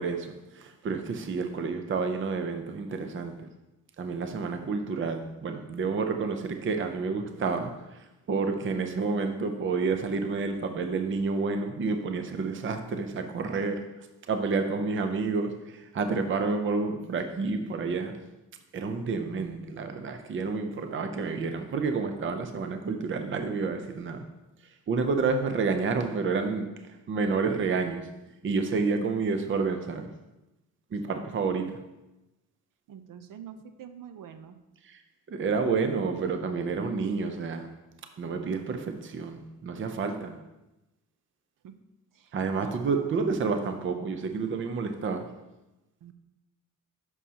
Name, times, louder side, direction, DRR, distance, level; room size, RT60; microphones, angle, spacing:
voice 1, 0.0-3.5 4.0-18.3 18.7-24.3 24.9-30.1 30.9-31.9 34.8-35.0 35.3-37.8 38.2-40.4 42.3-45.4, right 4 dB, 40° right, 0.6 m, -30 dB
voice 2, 32.9-34.6 41.6-41.7 42.1-43.4 46.0-46.1, right 8 dB, 80° right, 0.7 m, -46 dB
11.0 x 6.2 x 2.9 m
wide cardioid pair, 175°, 32 cm